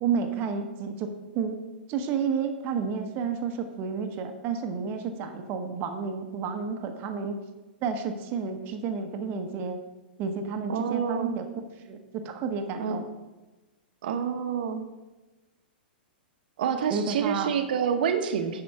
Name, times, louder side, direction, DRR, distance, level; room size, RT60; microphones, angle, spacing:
voice 1, 0.0-1.6 1.9-7.4 7.8-9.8 10.2-11.4 11.9-13.1 16.9-17.5, right 6 dB, 40° right, 6 dB, 1.0 m, -31 dB
voice 2, 10.7-11.3 12.8-13.0 14.0-14.8 16.6-18.6, right 7 dB, 65° right, 7 dB, 1.1 m, -27 dB
10.5 x 4.9 x 4.7 m, 1.1 s
hypercardioid pair, 110°, 6 cm